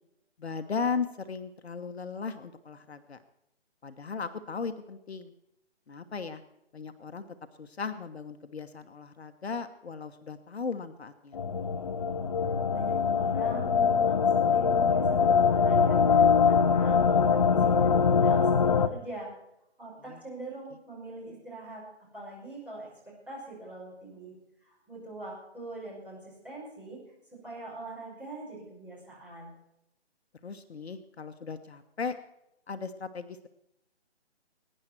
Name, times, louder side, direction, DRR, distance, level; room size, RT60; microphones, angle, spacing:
voice 1, 0.4-3.2 3.8-5.3 5.9-6.4 6.7-7.3 7.6-11.4 20.1-20.2 30.4-32.1 32.7-33.5, left 5 dB, 65° left, 8 dB, 1.2 m, -36 dB
sound 1, 11.3-18.9, left 6 dB, 35° left, 0.8 m, -23 dB
voice 2, 12.7-19.3 19.8-21.8 22.1-22.9 23.3-24.3 24.6-27.0 27.4-29.5, right 2 dB, 5° right, -8 dB, 5.8 m, -43 dB
22.0 x 10.0 x 4.5 m, 0.85 s
hypercardioid pair, 160°, 34 cm